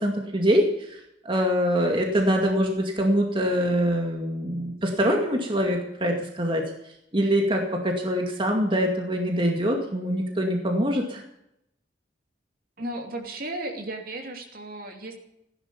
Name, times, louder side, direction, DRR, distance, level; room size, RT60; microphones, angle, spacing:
voice 1, 0.0-1.0 1.2-6.6 7.1-11.2, equal, 30° right, 1 dB, 2.2 m, -24 dB
voice 2, 12.8-15.1, right 1 dB, 55° right, 3 dB, 2.9 m, -34 dB
16.0 x 11.5 x 7.2 m, 0.80 s
head